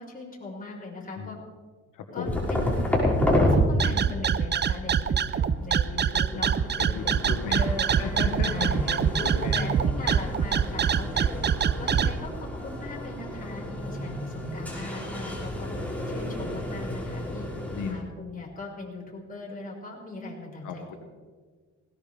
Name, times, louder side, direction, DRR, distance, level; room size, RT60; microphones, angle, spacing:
voice 1, 0.0-1.4 2.1-2.8 3.0-6.5 6.9-7.9 8.5-11.4 11.8-15.7 16.1-17.5 17.9-21.0, left 2 dB, 30° left, -2 dB, 5.5 m, -39 dB
voice 2, 1.9-2.5 6.3-6.5 6.8-7.7 8.0-9.7 17.7-18.0 20.6-20.9, left 6 dB, 85° left, 3 dB, 1.7 m, -35 dB
sound 1, 2.2-3.6 5.2-17.9, left 1 dB, 5° left, 5.6 m, -31 dB
sound 2, 3.5-12.1, right 7 dB, 35° right, 0.6 m, -24 dB
20.0 x 18.0 x 3.5 m, 1.5 s
cardioid pair, 90°, 30 cm